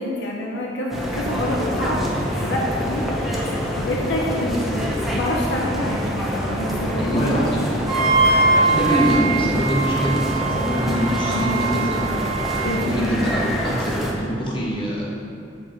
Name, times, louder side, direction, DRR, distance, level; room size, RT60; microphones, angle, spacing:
voice 1, 0.0-4.6 5.1-7.5 11.2-11.8 12.6-12.9, left 1 dB, 65° left, -2 dB, 0.7 m, -27 dB
sound 1, 0.9-14.1, equal, ahead, 0.8 m, -26 dB
voice 2, 4.5-4.9 6.9-8.2 8.6-12.2 12.8-15.0, equal, 25° left, -4 dB, 1.3 m, -24 dB
Wind instrument woodwind instrument, 7.9-12.8, right 3 dB, 25° right, 0.9 m, -22 dB
7.1 x 5.2 x 4.4 m, 2.6 s
head